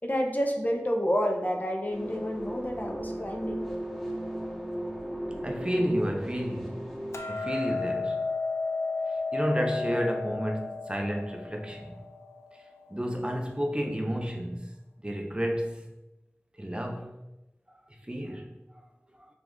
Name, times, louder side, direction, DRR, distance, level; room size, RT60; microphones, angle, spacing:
voice 1, 0.0-3.7, equal, 35° left, 0.6 m, -29 dB
sound 1, 1.9-7.2, right 1 dB, 5° left, 1.0 m, -36 dB
voice 2, 5.4-6.8 7.3-8.2 9.3-12.0 12.9-14.7 15.0-15.8 16.6-17.1 17.7-17.8 18.1-18.5, equal, 20° right, 0.6 m, -31 dB
Hammer, 7.1-13.4, left 3 dB, 90° left, 0.4 m, -33 dB
4.9 x 2.4 x 3.7 m
wide cardioid pair, 45°, 5 cm